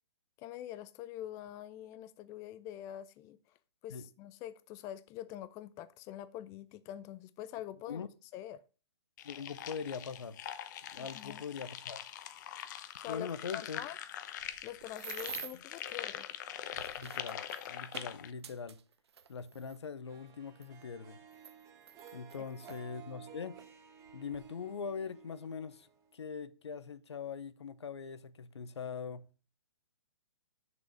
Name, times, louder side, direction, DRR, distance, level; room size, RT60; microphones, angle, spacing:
voice 1, 0.4-3.4 3.8-8.1 8.3-8.6 11.0-11.4 13.0-13.3 13.5-14.0 14.6-16.3, left 12 dB, 20° left, 0.4 m, -45 dB
voice 2, 9.2-10.4 10.9-12.1 13.1-13.8 17.0-18.8 19.3-21.2 22.1-23.6 24.1-25.9 26.1-29.2, left 6 dB, 85° left, 0.8 m, -42 dB
sound 1, 9.2-18.3, left 10 dB, 45° left, 0.8 m, -43 dB
sound 2, 14.4-15.7 16.5-19.8 20.6-20.7 21.3-22.8 23.6-23.7 24.1-24.4, right 7 dB, 75° right, 0.9 m, -48 dB
Harp, 20.1-26.3, right 8 dB, 25° right, 1.3 m, -55 dB
6.4 x 5.3 x 6.4 m
hypercardioid pair, 140°, 14 cm